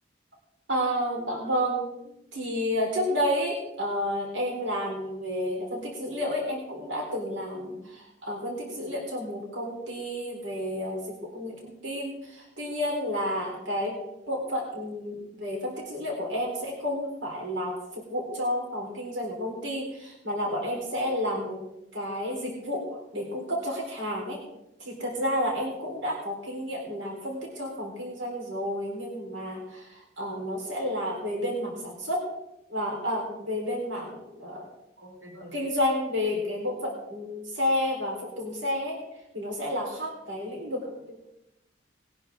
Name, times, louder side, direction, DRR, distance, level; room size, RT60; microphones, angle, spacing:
voice 1, 0.7-1.8 2.3-14.0 14.3-21.6 21.9-24.4 24.8-32.2 32.7-34.7 35.0-39.0 39.3-41.3, equal, 80° right, -1 dB, 4.1 m, -31 dB
21.0 x 10.5 x 3.7 m, 0.86 s
head